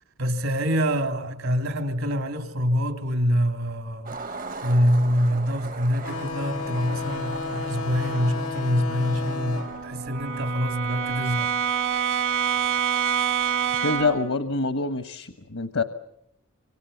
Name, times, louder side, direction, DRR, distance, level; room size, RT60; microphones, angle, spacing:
voice 1, 0.2-4.2 4.6-11.5, equal, 75° right, 3.3 m, -25 dB
Skateboard, 4.1-14.2, right 3 dB, 40° right, 0.9 m, -41 dB
sound 1, 6.0-11.2, left 4 dB, 90° left, 1.7 m, -33 dB
Brass instrument, 8.7-14.3, right 8 dB, 60° right, 1.7 m, -27 dB
voice 2, 13.8-15.8, left 3 dB, 75° left, 1.2 m, -26 dB
27.5 x 26.0 x 7.1 m
head